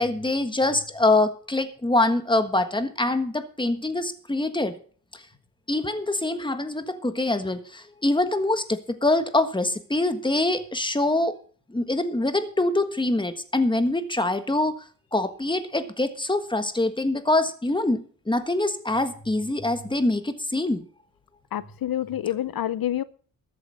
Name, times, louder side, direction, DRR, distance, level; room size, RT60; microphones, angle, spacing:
voice 1, 0.0-4.8 5.1-5.2 5.7-11.4 11.7-14.8 15.1-20.8, left 2 dB, 15° left, 1.4 m, -24 dB
voice 2, 21.5-23.0, left 12 dB, 80° left, 0.6 m, -27 dB
13.5 x 7.8 x 6.5 m
wide cardioid pair, 95°, 35 cm